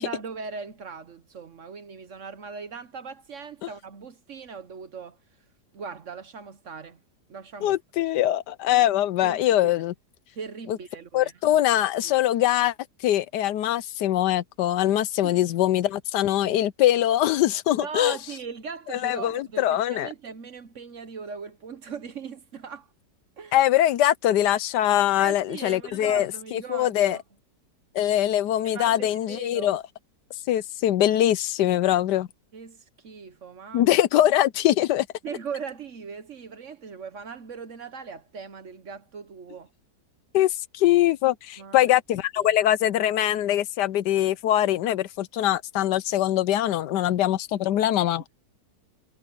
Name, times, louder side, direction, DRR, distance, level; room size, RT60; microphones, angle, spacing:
voice 1, 0.0-5.2 5.7-7.0 7.3-7.8 9.2-9.7 10.3-11.5 12.0-12.2 15.2-15.5 17.8-22.9 23.4-23.6 25.2-27.2 28.7-29.7 31.6-31.8 32.5-33.9 35.2-39.7 41.6-41.9 42.4-42.5, right 5 dB, 50° right, 1.1 m, -39 dB
voice 2, 7.6-9.9 11.1-12.7 13.0-18.2 18.9-20.1 23.5-27.2 27.9-29.8 30.5-32.3 33.7-35.1 40.3-48.2, left 13 dB, 75° left, 1.2 m, -22 dB
omnidirectional pair, 1.9 m